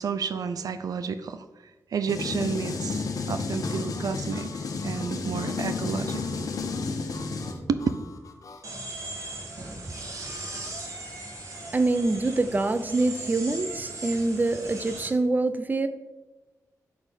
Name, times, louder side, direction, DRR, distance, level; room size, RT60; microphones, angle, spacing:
voice 1, 0.0-1.4 1.9-4.5 4.8-6.4 7.7-7.8, right 6 dB, 85° right, 0.5 m, -31 dB
sound 1, 2.1-7.5, left 4 dB, 80° left, 1.2 m, -31 dB
Harmonica, 3.6-8.7, left 4 dB, 65° left, 1.0 m, -48 dB
sound 2, 8.6-15.1, right 2 dB, 60° right, 2.3 m, -38 dB
voice 2, 11.7-15.9, right 2 dB, 30° right, 0.6 m, -25 dB
12.0 x 4.2 x 6.4 m
wide cardioid pair, 105°, 6 cm